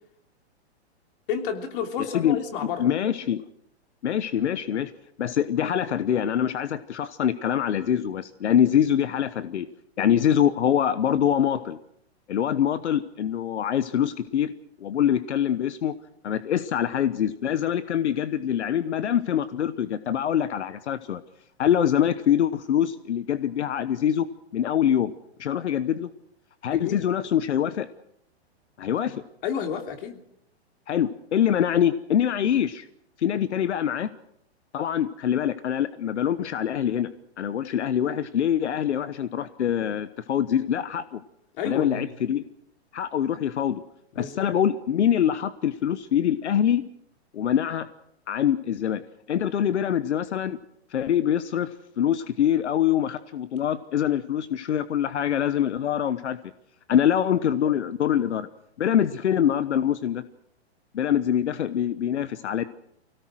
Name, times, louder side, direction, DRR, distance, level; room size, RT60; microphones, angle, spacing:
voice 1, 1.3-2.9 26.7-27.0 29.4-30.2 41.6-42.1 44.1-44.4, left 7 dB, 50° left, 5 dB, 3.2 m, -30 dB
voice 2, 2.8-3.4 4.0-4.9 5.2-9.7 10.0-11.8 12.3-14.5 14.8-16.0 16.2-21.2 21.6-24.3 24.5-25.1 25.4-26.1 26.6-27.9 28.8-29.2 30.9-32.9 33.2-34.1 34.7-41.2 41.6-42.4 42.9-43.8 44.2-46.8 47.3-47.9 48.3-49.0 49.3-50.6 50.9-56.5 56.9-58.5 58.8-60.2 60.9-62.7, left 9 dB, 85° left, 13 dB, 1.1 m, -24 dB
25.0 x 17.5 x 6.3 m, 0.75 s
hypercardioid pair, 145°, 33 cm